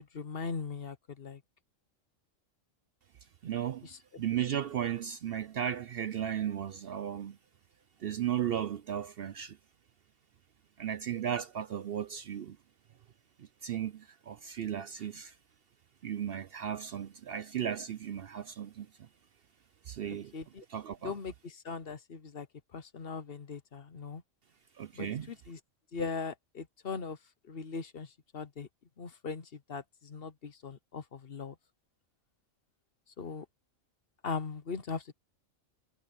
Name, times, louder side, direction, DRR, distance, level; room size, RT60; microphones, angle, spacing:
voice 1, 0.1-1.4 3.8-4.0 20.3-20.6 21.0-22.5 22.7-24.2 24.9-25.6 25.9-27.2 27.5-28.7 29.0-31.5 33.2-33.4 34.2-35.1, left 5 dB, 50° left, 1.1 m, -39 dB
voice 2, 3.4-3.9 4.2-7.4 8.0-9.6 10.8-12.6 13.4-15.3 16.0-18.9 19.9-20.3 20.7-21.1 24.8-25.3, right 10 dB, 60° right, 0.7 m, -35 dB
omnidirectional pair, 1.3 m